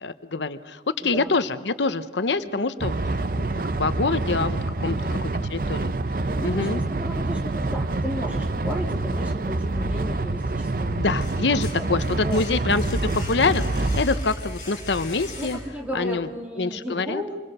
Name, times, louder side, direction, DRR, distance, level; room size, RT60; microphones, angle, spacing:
voice 1, 0.0-2.9 3.4-5.0 5.5-5.9 6.4-6.8 10.9-15.6 15.9-16.3 16.6-17.2, left 3 dB, 85° left, 12 dB, 0.9 m, -25 dB
voice 2, 1.0-1.3 2.4-2.7 4.8-5.2 6.4-11.2 11.7-12.6 15.4-17.4, equal, 10° right, -1 dB, 3.1 m, -35 dB
sound 1, 2.8-14.0, right 2 dB, 50° right, 0.6 m, -27 dB
sound 2, 9.7-10.5 10.9-16.0, equal, 45° left, 7.0 m, -32 dB
27.0 x 21.5 x 6.7 m, 1.5 s
head